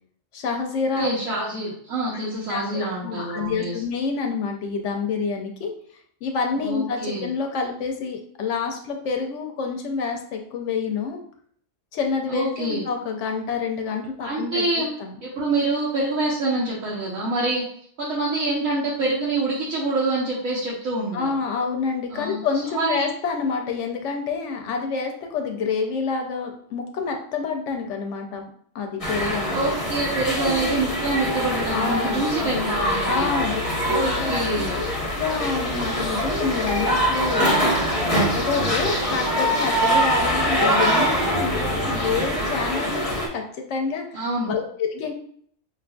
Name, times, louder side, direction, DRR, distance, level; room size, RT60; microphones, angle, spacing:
voice 1, 0.3-1.1 2.5-5.7 6.2-11.2 11.9-15.2 21.1-28.4 28.7-29.7 31.7-32.7 33.0-33.6 33.9-37.8 38.1-45.1, left 5 dB, 70° left, 3 dB, 0.9 m, -28 dB
voice 2, 1.0-3.7 6.6-7.3 12.3-12.8 14.2-14.9 15.2-17.7 18.0-21.3 22.1-22.4 22.7-23.1 29.5-33.3 33.8-34.7 44.1-44.5, right 2 dB, 85° right, -6 dB, 1.2 m, -26 dB
sound 1, 29.0-43.3, equal, 30° left, 0.8 m, -24 dB
5.4 x 2.5 x 2.2 m, 0.62 s
omnidirectional pair, 1.4 m